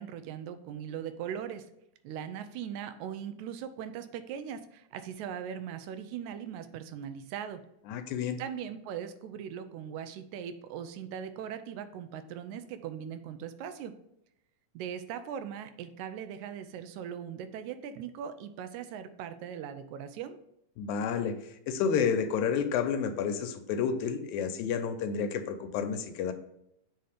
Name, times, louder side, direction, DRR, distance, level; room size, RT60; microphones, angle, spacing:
voice 1, 0.0-1.7 2.0-7.6 8.4-14.0 14.7-20.4, right 8 dB, 80° right, 10 dB, 1.9 m, -40 dB
voice 2, 7.9-8.4 20.8-21.3 21.7-26.3, left 6 dB, 80° left, 6 dB, 2.0 m, -30 dB
7.6 x 2.8 x 4.9 m, 0.78 s
omnidirectional pair, 3.5 m